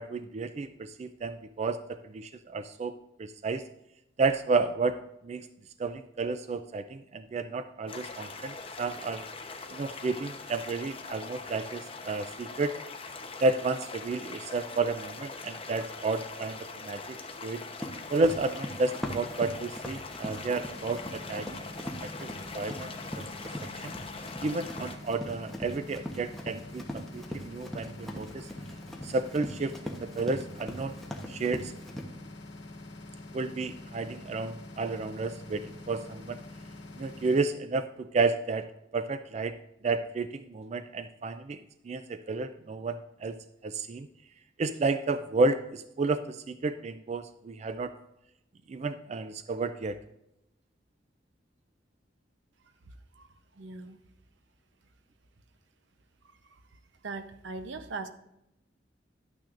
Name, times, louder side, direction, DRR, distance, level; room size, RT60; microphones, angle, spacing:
voice 1, 0.0-3.7 4.2-5.5 5.8-9.2 9.7-12.7 13.4-17.6 18.1-21.6 22.0-22.9 23.8-24.0 24.4-28.5 29.0-31.0 31.3-31.7 33.3-36.4 37.0-38.7 38.9-39.6 39.8-41.6 41.8-43.3 43.6-44.1 44.6-47.9 48.7-50.0, right 3 dB, 35° right, 10 dB, 0.4 m, -31 dB
sound 1, 7.9-25.0, left 4 dB, 30° left, 0.9 m, -42 dB
Run, 17.8-32.0, equal, ahead, 0.9 m, -41 dB
sound 2, 20.7-37.4, left 2 dB, 70° left, 1.0 m, -46 dB
voice 2, 53.5-54.0 56.2-56.6 57.0-58.1, right 3 dB, 80° right, 9 dB, 0.8 m, -40 dB
11.5 x 8.9 x 2.5 m, 0.85 s
head